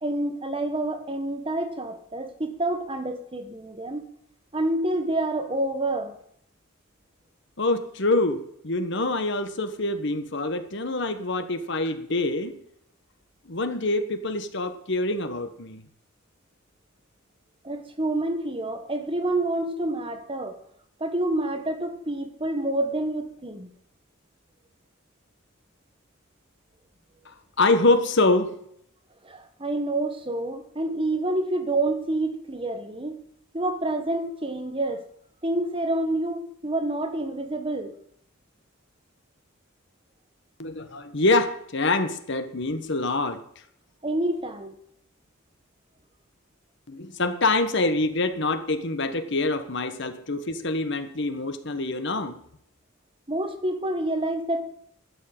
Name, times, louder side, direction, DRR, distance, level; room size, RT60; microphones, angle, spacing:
voice 1, 0.0-4.0 4.5-6.1 17.6-20.6 21.0-23.7 29.2-33.2 33.5-35.0 35.4-37.9 44.0-44.8 53.3-54.6, right 1 dB, 25° right, 1.4 m, -28 dB
voice 2, 7.6-12.6 13.4-15.8 27.2-28.5 40.6-43.4 46.9-52.4, left 2 dB, 60° left, 1.4 m, -25 dB
12.5 x 7.5 x 8.9 m
head